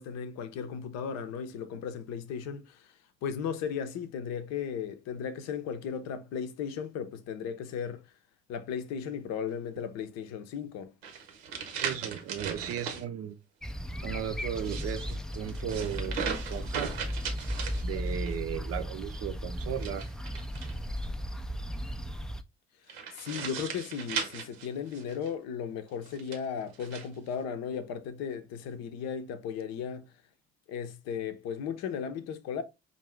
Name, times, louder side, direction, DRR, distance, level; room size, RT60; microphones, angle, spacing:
voice 1, 0.0-8.1 8.5-10.9 22.8-30.1 30.7-32.6, left 7 dB, 55° left, 0.7 m, -36 dB
sound 1, 11.0-13.0 14.5-18.4 19.7-21.1 22.9-25.3 26.1-27.1, right 6 dB, 70° right, 0.9 m, -38 dB
voice 2, 11.7-13.4 14.0-16.9 17.8-20.0, right 9 dB, 45° right, 0.6 m, -36 dB
sound 2, 13.6-22.4, equal, ahead, 0.4 m, -36 dB
5.3 x 2.6 x 3.1 m
figure-of-eight pair, 45°, 32 cm